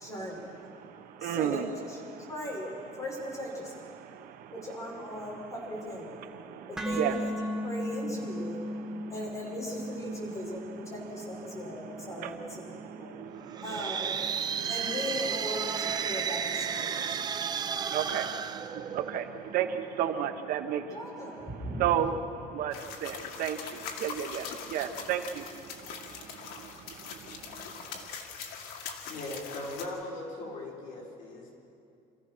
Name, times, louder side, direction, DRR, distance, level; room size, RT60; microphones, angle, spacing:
voice 1, 0.0-0.7 1.2-3.8 4.5-6.3 6.7-7.4 7.6-8.6 9.1-10.6 10.9-12.6 13.0-13.1 13.6-14.3 14.7-17.2 20.9-22.1, equal, 20° left, -3 dB, 5.8 m, -38 dB
voice 2, 0.7-1.7 2.1-2.3 3.9-4.6 5.1-5.5 6.2-7.1 7.4-7.7 8.1-9.5 10.1-15.0 15.4-28.1, right 9 dB, 65° right, 8 dB, 1.1 m, -36 dB
sound 1, 6.8-14.9, left 1 dB, 5° right, 1.7 m, -38 dB
sound 2, 13.5-19.4, right 7 dB, 25° right, 0.6 m, -33 dB
sound 3, 22.7-29.9, left 6 dB, 80° left, 2.2 m, -42 dB
voice 3, 29.1-31.5, left 2 dB, 60° left, -4 dB, 5.5 m, -39 dB
27.5 x 15.0 x 6.2 m, 2.6 s
cardioid pair, 165°, 16 cm